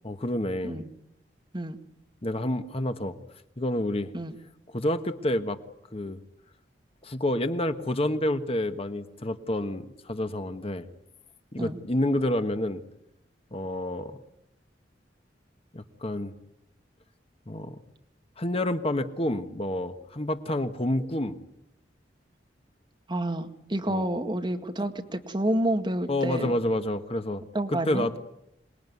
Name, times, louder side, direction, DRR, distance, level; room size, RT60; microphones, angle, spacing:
voice 1, 0.0-0.8 2.2-3.2 3.6-4.1 4.7-5.6 5.9-6.2 7.0-10.9 11.5-12.8 13.5-14.2 15.7-16.3 17.5-17.7 18.4-21.4 23.9-24.0 26.1-27.4 27.7-28.2, left 1 dB, 35° left, 8 dB, 1.3 m, -28 dB
voice 2, 23.1-26.5 27.5-28.1, right 1 dB, 25° right, 5 dB, 2.1 m, -29 dB
27.0 x 21.0 x 9.6 m, 0.84 s
head